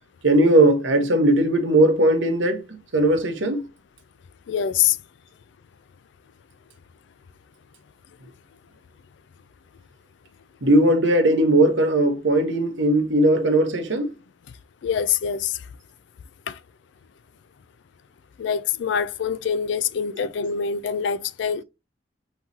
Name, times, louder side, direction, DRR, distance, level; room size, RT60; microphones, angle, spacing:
voice 1, 0.2-2.6 2.9-3.6 10.6-14.1 20.1-20.3, right 1 dB, 90° right, 1.1 m, -18 dB
voice 2, 4.5-5.0 14.8-15.6 16.5-16.6 18.4-21.6, left 8 dB, 75° left, 0.3 m, -24 dB
5.6 x 3.0 x 2.7 m
head